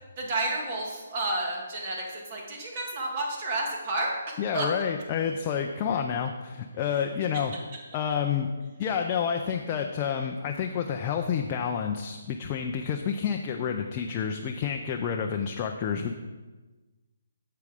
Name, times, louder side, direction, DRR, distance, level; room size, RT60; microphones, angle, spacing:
voice 1, 0.2-4.7 6.9-7.0, right 2 dB, 35° right, -1 dB, 2.0 m, -31 dB
voice 2, 4.4-7.5 7.9-8.5 8.8-16.1, left 7 dB, 25° left, 3 dB, 0.5 m, -29 dB
8.1 x 7.7 x 3.6 m, 1.2 s
hypercardioid pair, 160°, 0 cm